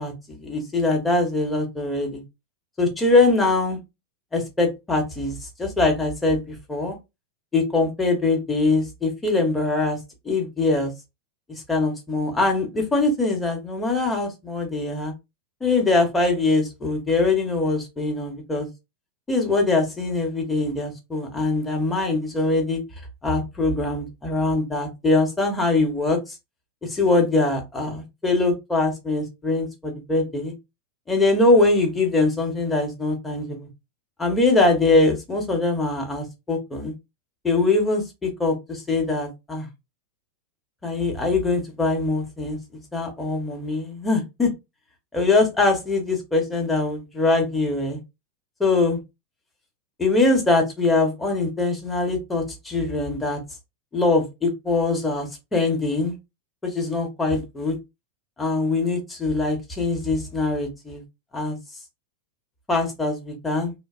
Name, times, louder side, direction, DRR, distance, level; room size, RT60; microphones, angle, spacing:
voice 1, 0.0-2.2 2.8-3.8 4.3-7.0 7.5-10.0 10.2-10.9 11.5-15.1 15.6-18.7 19.3-22.8 23.2-26.4 26.8-30.5 31.1-33.7 34.2-36.9 37.4-39.7 40.8-44.5 45.1-48.0 48.6-49.0 50.0-53.4 53.9-56.2 56.6-57.8 58.4-61.0 61.3-61.6 62.7-63.7, left 3 dB, 10° left, 1.0 m, -22 dB
2.6 x 2.2 x 2.4 m
figure-of-eight pair, 90°, 0 cm